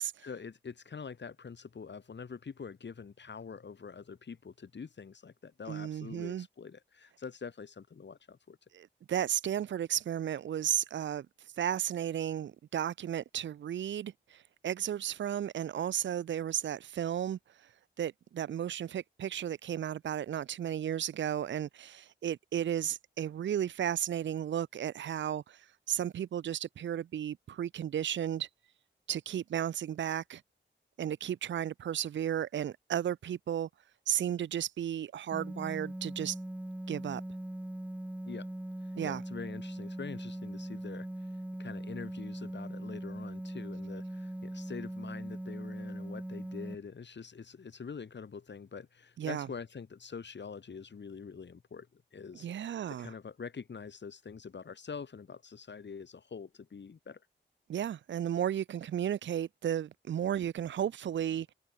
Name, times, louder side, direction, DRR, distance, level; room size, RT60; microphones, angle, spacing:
voice 1, 0.0-8.6 38.3-38.5 38.8-52.5 52.9-57.2, left 5 dB, 65° left, 3.8 m, -45 dB
voice 2, 5.7-6.5 8.7-17.7 18.0-28.5 29.1-30.4 31.0-33.7 34.1-36.4 36.9-37.2 39.0-39.2 49.2-49.5 52.4-53.1 57.7-61.5, right 10 dB, 75° right, 0.4 m, -34 dB
sound 1, 35.3-46.7, right 1 dB, 5° right, 0.6 m, -40 dB
wide cardioid pair, 130°, 20 cm